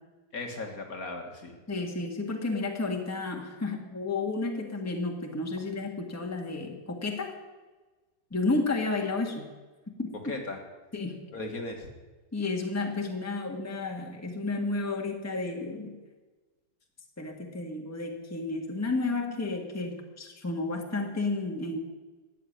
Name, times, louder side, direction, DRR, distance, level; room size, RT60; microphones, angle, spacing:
voice 1, 0.3-1.6 10.2-10.6 11.3-11.9, left 2 dB, 50° left, 3 dB, 2.0 m, -37 dB
voice 2, 1.7-7.3 8.3-9.5 10.0-10.1 10.9-11.2 12.3-16.0 17.2-21.8, left 3 dB, 10° left, 1 dB, 1.6 m, -32 dB
13.5 x 8.2 x 9.8 m, 1.3 s
omnidirectional pair, 2.0 m